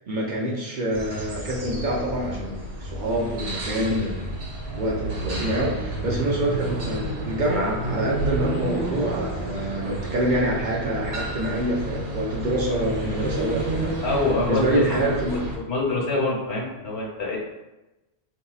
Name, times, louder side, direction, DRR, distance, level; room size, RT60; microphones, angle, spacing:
voice 1, 0.0-4.3 4.7-14.0 14.5-15.5, right 1 dB, 55° right, -3 dB, 0.6 m, -26 dB
sound 1, 0.9-15.6, right 1 dB, 75° right, 1.0 m, -31 dB
voice 2, 14.0-14.6 14.9-15.1 15.6-17.4, left 2 dB, 75° left, -3 dB, 1.2 m, -25 dB
4.0 x 2.7 x 2.3 m, 1.0 s
omnidirectional pair, 1.1 m